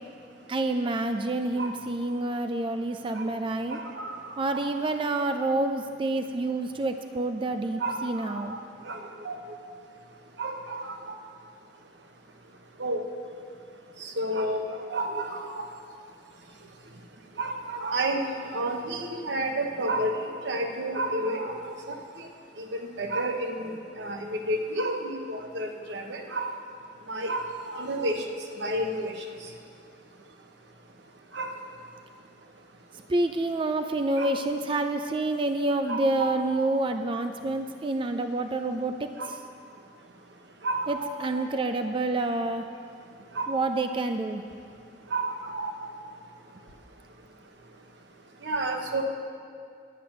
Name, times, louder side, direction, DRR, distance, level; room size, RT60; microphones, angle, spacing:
voice 1, 0.5-3.8 4.4-8.6 33.1-39.4 40.9-42.6 43.5-44.4, right 2 dB, 30° right, 7 dB, 0.4 m, -28 dB
voice 2, 3.7-4.2 4.5-4.9 7.8-8.6 8.8-9.5 10.4-11.1 12.8-13.0 14.0-15.7 17.4-20.1 20.4-22.3 22.6-23.7 24.0-26.5 27.1-28.2 28.6-29.2 31.3-31.5 34.2-34.4 35.9-36.6 39.2-39.4 40.6-41.4 43.3-43.5 45.1-45.8 48.4-49.0, right 1 dB, 85° right, 3 dB, 1.0 m, -31 dB
10.0 x 8.8 x 5.9 m, 2.4 s
head